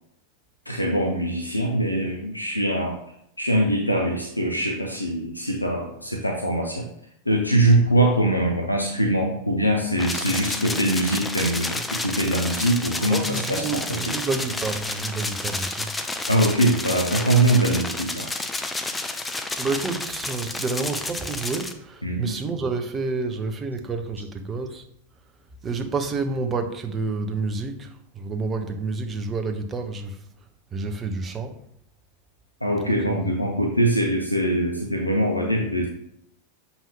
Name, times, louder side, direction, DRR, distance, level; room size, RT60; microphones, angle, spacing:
voice 1, 0.7-3.0 3.4-6.9 7.3-14.1 16.3-18.3 22.0-22.4 32.6-35.9, right 1 dB, 85° left, 0.8 m, -23 dB
sound 1, 10.0-21.7, left 2 dB, 10° left, 0.6 m, -30 dB
voice 2, 13.1-15.9 19.6-24.8 25.6-30.2 30.7-31.6 32.7-33.6, right 3 dB, 20° right, 0.8 m, -29 dB
7.3 x 5.6 x 2.9 m
figure-of-eight pair, 90°, 0 cm